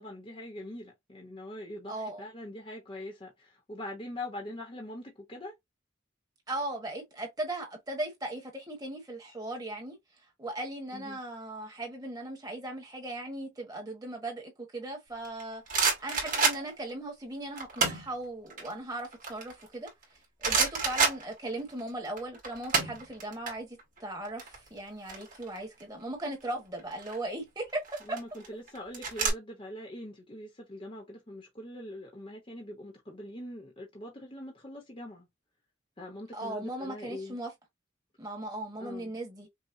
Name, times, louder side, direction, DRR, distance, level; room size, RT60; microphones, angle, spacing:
voice 1, 0.0-5.5 10.9-11.2 28.0-35.3 36.0-37.4 38.8-39.2, left 1 dB, 25° left, 1.0 m, -43 dB
voice 2, 1.9-2.2 6.5-10.0 10.4-15.6 16.0-19.9 20.4-28.2 36.3-37.5 38.2-39.5, right 1 dB, 20° right, 1.4 m, -38 dB
sound 1, 15.2-16.9 17.6-18.1 18.5-20.0 20.4-21.8 22.1-23.5 23.8-24.0 24.2-25.8 26.8-27.2 27.8-29.3, right 4 dB, 40° right, 1.7 m, -29 dB
5.6 x 2.4 x 2.7 m
head